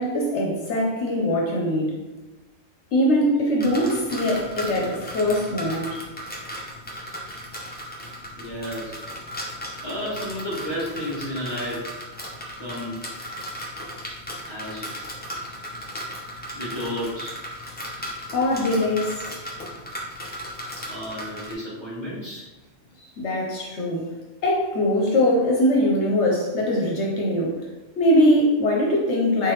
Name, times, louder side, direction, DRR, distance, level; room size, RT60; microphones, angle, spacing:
voice 1, 0.0-2.0 2.9-6.0 18.3-19.3 23.1-24.1 24.4-27.6 28.0-29.5, left 1 dB, 65° left, -2 dB, 0.9 m, -22 dB
sound 1, 3.6-21.5, equal, 15° left, 0.3 m, -36 dB
voice 2, 8.4-9.0 9.8-11.9 12.6-13.0 14.5-14.9 16.5-17.4 20.9-22.5, equal, 20° right, -7 dB, 1.0 m, -32 dB
3.5 x 3.3 x 3.1 m, 1.1 s
omnidirectional pair, 1.4 m